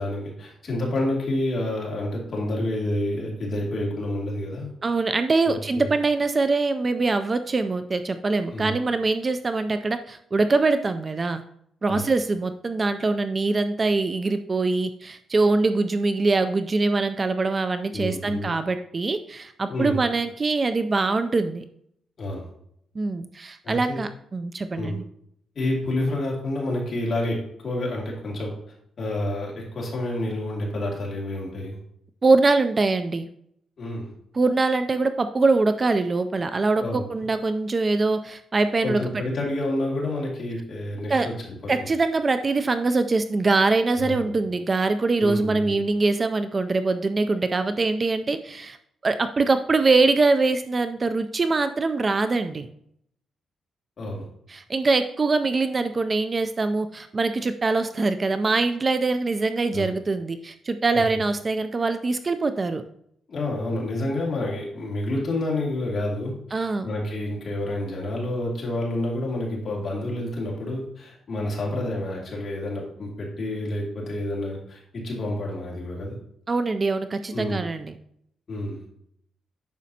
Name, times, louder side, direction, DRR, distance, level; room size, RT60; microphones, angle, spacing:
voice 1, 0.0-4.7 5.4-5.9 8.5-8.8 11.9-12.1 17.9-18.5 19.7-20.0 22.2-22.4 23.6-24.0 24.8-25.0 25.6-28.5 29.0-31.8 33.8-34.1 36.8-37.1 38.8-41.9 44.0-44.3 45.2-45.7 54.0-54.2 59.7-59.9 60.9-61.0 63.3-76.2 77.3-77.6 78.5-78.8, left 1 dB, 40° left, -3 dB, 2.3 m, -29 dB
voice 2, 4.8-11.4 11.8-21.6 23.0-25.0 32.2-33.3 34.3-39.0 41.1-41.3 41.7-48.8 49.0-52.7 54.5-62.8 66.5-66.9 76.5-77.9, right 3 dB, 25° right, 10 dB, 0.3 m, -23 dB
9.2 x 6.1 x 2.8 m, 0.71 s
cardioid pair, 145°, 0 cm